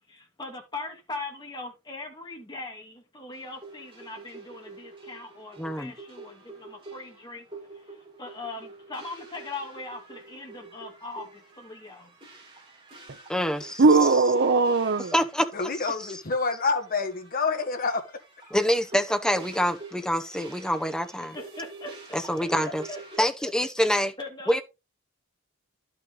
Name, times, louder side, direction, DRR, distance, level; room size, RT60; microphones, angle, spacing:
voice 1, 0.1-7.5 7.7-12.1 21.3-23.5 23.9-24.6, left 3 dB, 20° left, 2.5 m, -40 dB
sound 1, 3.3-23.2, right 3 dB, 25° right, 4.0 m, -47 dB
voice 2, 5.6-5.9 13.3-13.8 15.1-15.5 15.8-15.9 18.5-21.4 22.1-22.8 23.2-24.1 24.5-24.6, equal, 5° left, 0.9 m, -26 dB
voice 3, 13.8-15.1, right 3 dB, 50° right, 0.6 m, -19 dB
voice 4, 15.5-18.0, left 4 dB, 45° left, 1.5 m, -27 dB
11.5 x 5.6 x 3.9 m
head